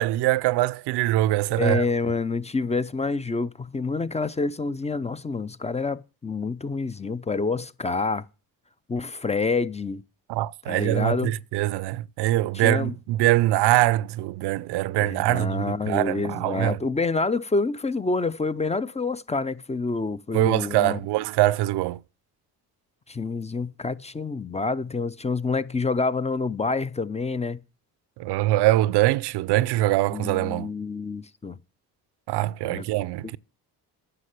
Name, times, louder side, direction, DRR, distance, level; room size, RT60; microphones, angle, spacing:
voice 1, 0.0-1.8 10.3-16.8 20.3-22.0 28.2-30.7 32.3-33.4, right 16 dB, 85° right, 0.5 m, -23 dB
voice 2, 1.6-8.2 8.9-10.0 10.7-11.4 12.5-12.9 15.0-21.0 23.1-27.6 30.1-31.6 32.6-32.9, left 4 dB, 15° left, 0.5 m, -27 dB
9.8 x 6.6 x 6.5 m
cardioid pair, 85°, 39 cm